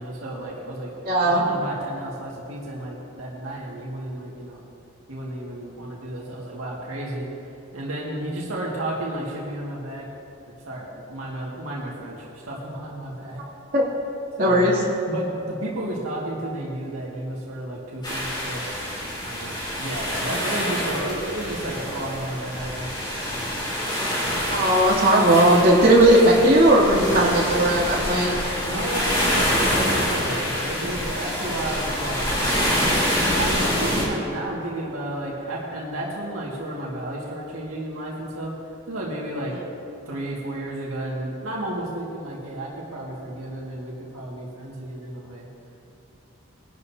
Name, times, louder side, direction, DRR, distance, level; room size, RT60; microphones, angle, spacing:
voice 1, 0.0-0.9 1.2-4.6 5.1-7.3 7.7-10.1 10.5-13.4 14.4-18.6 19.2-22.9 28.6-33.0 33.3-38.5 38.9-39.5 40.1-45.5, right 1 dB, 85° right, -4 dB, 2.1 m, -32 dB
voice 2, 1.0-1.4 13.7-13.8 14.4-14.8 24.5-28.3, right 1 dB, 45° right, -7 dB, 3.0 m, -17 dB
sound 1, 18.0-34.0, equal, 20° left, 2.8 m, -26 dB
21.0 x 12.0 x 2.8 m, 2.9 s
head